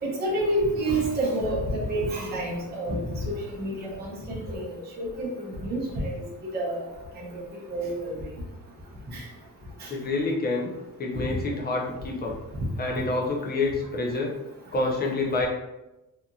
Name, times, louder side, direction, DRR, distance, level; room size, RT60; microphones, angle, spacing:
voice 1, 0.0-3.0 3.2-6.1 6.5-6.8 7.2-7.3 7.7-8.1 9.1-9.2, right 1 dB, 30° right, -5 dB, 0.6 m, -28 dB
voice 2, 9.9-10.7 11.0-12.4 12.8-14.3 14.7-15.5, left 2 dB, 30° left, -1 dB, 0.4 m, -27 dB
2.8 x 2.5 x 2.3 m, 0.96 s
wide cardioid pair, 170°, 35 cm